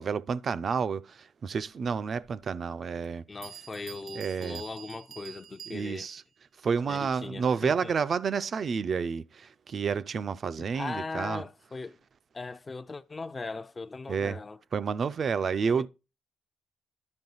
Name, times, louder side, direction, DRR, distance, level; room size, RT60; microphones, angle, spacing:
voice 1, 0.0-3.2 4.2-4.6 5.7-6.2 6.6-11.4 14.1-14.4 14.7-15.9, right 6 dB, 50° right, 0.4 m, -30 dB
Bell, 3.0-3.1 3.4-6.2, right 8 dB, 70° right, 0.9 m, -46 dB
voice 2, 3.3-6.1 6.9-7.9 10.7-12.0 12.3-14.6 15.7-15.9, left 3 dB, 25° left, 0.4 m, -39 dB
10.5 x 5.3 x 3.9 m
cardioid pair, 90°, 0 cm